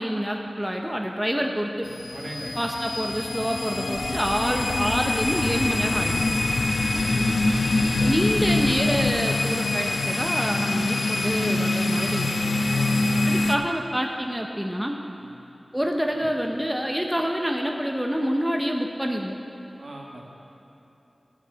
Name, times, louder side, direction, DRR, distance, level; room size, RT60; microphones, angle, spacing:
voice 1, 0.0-1.9 2.6-6.2 8.0-12.4 13.2-15.0 15.7-19.4, equal, 5° right, 1 dB, 0.8 m, -27 dB
sound 1, 1.8-13.5, left 2 dB, 80° left, 0.6 m, -24 dB
voice 2, 2.1-2.7 12.7-13.3 15.2-15.3 16.1-16.3 19.8-20.3, right 1 dB, 65° right, -2 dB, 1.7 m, -40 dB
sound 2, 3.9-9.2, left 1 dB, 45° left, 0.8 m, -37 dB
11.0 x 6.2 x 7.6 m, 3.0 s
wide cardioid pair, 70°, 0 cm